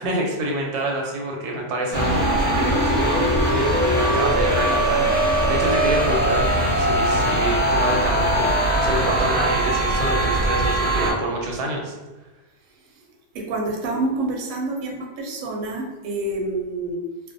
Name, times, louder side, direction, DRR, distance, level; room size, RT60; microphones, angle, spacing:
voice 1, 0.0-6.5 6.8-11.9, right 1 dB, 85° right, 0 dB, 1.1 m, -27 dB
sound 1, 1.9-11.1, right 1 dB, 10° left, 0.5 m, -20 dB
voice 2, 13.3-17.0, right 2 dB, 65° right, 0 dB, 0.8 m, -27 dB
2.5 x 2.1 x 2.5 m, 1.2 s
omnidirectional pair, 1.6 m